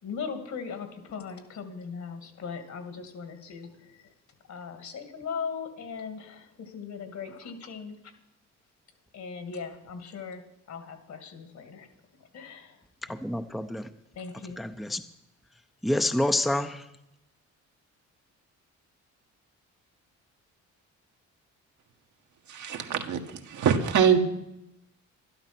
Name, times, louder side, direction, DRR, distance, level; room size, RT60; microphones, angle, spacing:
voice 1, 0.0-3.9 4.5-8.0 9.1-10.4 10.7-11.9 12.3-12.8 14.2-14.6, left 5 dB, 65° left, 8 dB, 2.4 m, -39 dB
voice 2, 13.1-13.9 14.6-15.0 15.8-16.8, left 1 dB, ahead, 7 dB, 0.7 m, -27 dB
voice 3, 22.5-23.2 23.5-24.2, right 7 dB, 75° right, 4 dB, 1.8 m, -23 dB
12.0 x 12.0 x 6.1 m, 0.86 s
cardioid pair, 90°, 30 cm